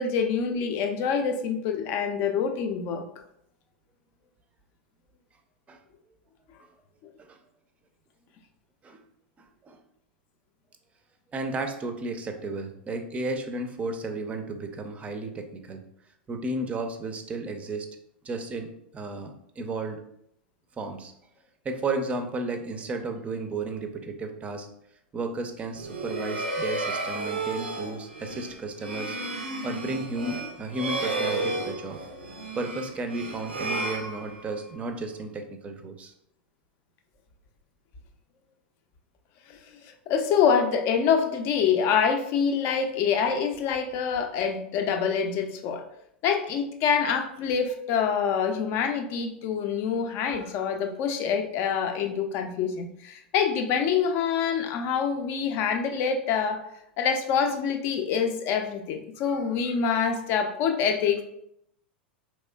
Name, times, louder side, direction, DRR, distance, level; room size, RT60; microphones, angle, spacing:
voice 1, 0.0-3.0 39.5-39.6 40.1-45.8 46.2-56.6 57.0-61.2, left 6 dB, 45° left, 5 dB, 0.5 m, -26 dB
voice 2, 9.4-9.8 11.3-15.8 16.3-17.9 18.2-20.0 20.8-21.1 21.6-24.7 25.1-29.2 29.6-32.0 32.6-36.1, right 2 dB, 25° right, 5 dB, 0.5 m, -33 dB
sound 1, 25.7-34.8, right 2 dB, 90° right, 0.5 m, -32 dB
4.1 x 3.1 x 2.3 m, 0.75 s
hypercardioid pair, 95°, 6 cm